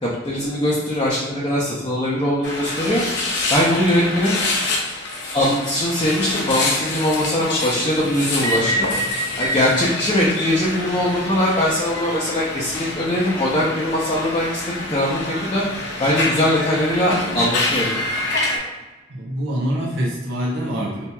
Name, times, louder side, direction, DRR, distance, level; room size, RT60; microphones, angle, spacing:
voice 1, 0.0-3.0 3.5-4.4 5.3-8.9 9.4-14.6 14.9-15.6 16.0-18.0, left 1 dB, 25° left, -6 dB, 0.5 m, -21 dB
sound 1, 2.4-18.6, left 2 dB, 70° left, 0.7 m, -26 dB
voice 2, 19.1-21.1, equal, 70° right, -3 dB, 0.7 m, -25 dB
4.3 x 2.8 x 2.2 m, 1.1 s
head